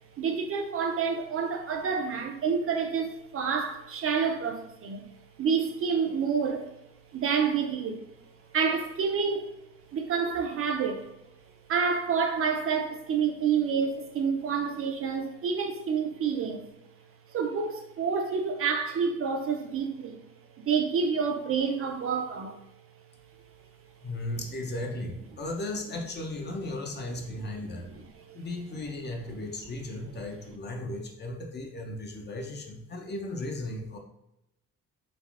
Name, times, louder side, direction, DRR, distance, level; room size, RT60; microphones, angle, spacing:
voice 1, 0.2-5.1 5.4-6.7 7.1-8.0 8.5-9.5 9.9-11.1 11.7-16.7 17.3-20.3 20.6-22.6 27.6-27.7 28.3-28.4, right 6 dB, 50° right, 0.4 m, -28 dB
voice 2, 24.0-27.9 28.3-34.0, left 2 dB, 35° left, 0.6 m, -36 dB
3.3 x 2.5 x 2.4 m
cardioid pair, 90°, 30 cm